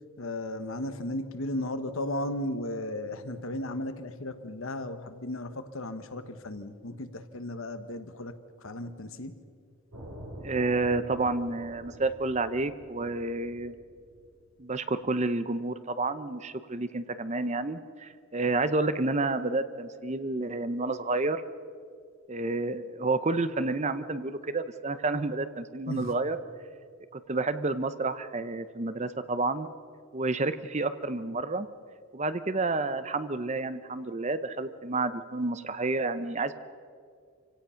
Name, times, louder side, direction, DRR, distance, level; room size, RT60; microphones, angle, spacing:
voice 1, 0.2-9.4 25.9-26.1, left 1 dB, 65° left, 10 dB, 1.2 m, -35 dB
sound 1, 9.9-14.7, equal, 80° right, 3.2 m, -46 dB
voice 2, 10.4-13.7 14.6-21.4 22.3-26.4 27.1-29.7 30.1-31.7 32.1-36.5, right 3 dB, 30° right, 12 dB, 0.6 m, -30 dB
26.5 x 17.0 x 5.7 m, 2.3 s
head